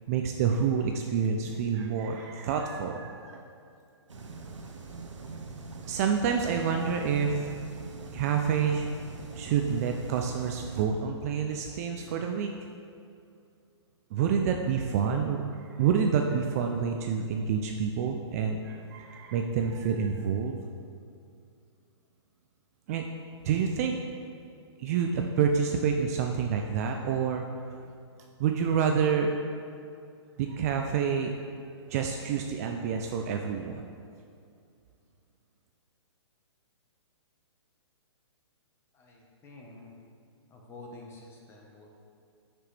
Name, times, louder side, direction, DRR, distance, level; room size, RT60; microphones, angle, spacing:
voice 1, 0.1-3.4 5.8-7.5 8.1-8.9 9.4-12.5 14.1-20.6 22.9-23.1 23.4-24.0 24.8-27.4 28.4-29.3 30.4-31.3 31.9-33.8, right 6 dB, 30° right, 3 dB, 0.3 m, -28 dB
sound 1, 4.1-10.9, right 3 dB, 90° right, 0.9 m, -43 dB
voice 2, 38.9-40.0 40.5-41.9, left 2 dB, 15° left, -1 dB, 1.0 m, -49 dB
7.3 x 6.0 x 3.3 m, 2.4 s
hypercardioid pair, 140°, 15 cm